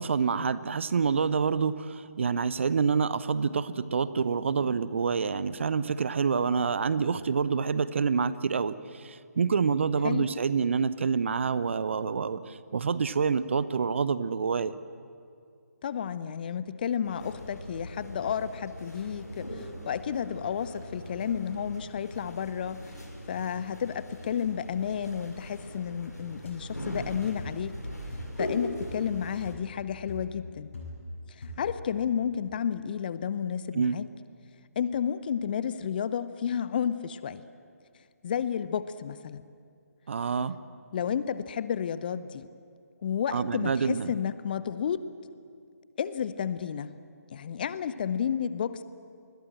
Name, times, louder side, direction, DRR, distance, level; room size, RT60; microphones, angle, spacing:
voice 1, 0.0-14.7 33.7-34.0 40.1-40.6 43.3-44.1, right 5 dB, 45° right, 16 dB, 0.9 m, -27 dB
voice 2, 15.8-22.8 23.3-27.8 28.4-30.7 31.4-34.1 34.8-37.4 38.2-39.5 40.9-42.5 43.0-45.0 46.0-46.9 47.3-48.8, left 8 dB, 35° left, 15 dB, 0.8 m, -31 dB
sound 1, 17.0-29.5, equal, 85° left, 6.2 m, -40 dB
sound 2, 26.4-26.6 27.4-27.6 28.1-28.5 28.8-29.1 29.4-29.7 30.1-31.2 31.4-31.8, left 1 dB, 50° left, 7.8 m, -42 dB
28.5 x 21.0 x 7.7 m, 2.3 s
figure-of-eight pair, 145°, 9 cm